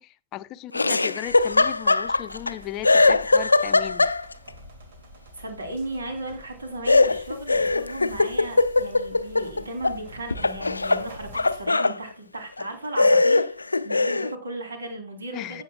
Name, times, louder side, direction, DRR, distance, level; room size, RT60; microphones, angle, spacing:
voice 1, 0.0-4.1 15.3-15.6, left 13 dB, 40° left, 0.6 m, -36 dB
Laughter, 0.7-2.5 2.8-4.5 6.9-10.0 10.3-12.0 12.6-12.7 13.0-14.3, left 3 dB, 80° left, 0.4 m, -21 dB
sound 1, 1.3-11.7, equal, 60° right, 2.5 m, -48 dB
voice 2, 5.3-13.6 13.8-15.6, right 1 dB, 75° right, 3.1 m, -36 dB
16.5 x 7.2 x 2.3 m
figure-of-eight pair, 90°, 0 cm